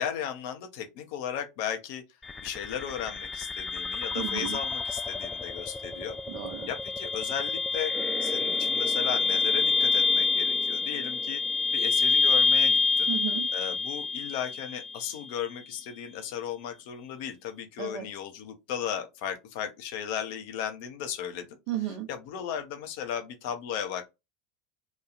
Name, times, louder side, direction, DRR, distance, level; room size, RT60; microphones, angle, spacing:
voice 1, 0.0-2.0 2.4-6.2 6.7-7.9 8.2-11.4 11.7-13.1 13.5-21.5 22.1-24.1, left 9 dB, 55° left, 0.6 m, -35 dB
sound 1, 2.2-15.2, left 4 dB, 15° left, 0.4 m, -27 dB
voice 2, 4.1-4.6 6.3-6.7 13.1-13.5 17.8-18.1 21.7-22.1, right 12 dB, 50° right, 0.7 m, -33 dB
sound 2, 7.9-15.1, right 1 dB, 15° right, 0.8 m, -43 dB
3.0 x 2.3 x 2.3 m
figure-of-eight pair, 80°, 0 cm